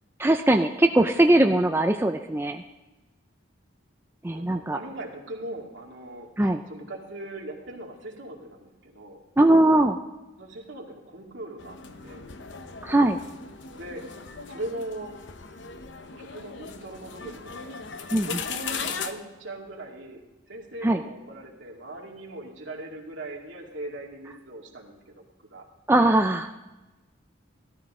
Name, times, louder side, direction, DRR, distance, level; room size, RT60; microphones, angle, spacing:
voice 1, 0.2-2.6 4.2-4.8 6.4-6.6 9.4-10.0 12.8-13.2 18.1-18.3 20.8-21.0 25.9-26.5, right 1 dB, 10° right, 5 dB, 0.4 m, -20 dB
voice 2, 4.3-9.2 10.4-11.8 12.0-12.3 13.7-14.0 14.5-15.2 16.2-17.7 18.2-25.1 25.5-25.7, right 1 dB, 70° right, -1 dB, 2.4 m, -39 dB
sound 1, 11.6-19.1, left 6 dB, 65° left, 0.8 m, -38 dB
16.5 x 13.0 x 3.7 m, 1.1 s
head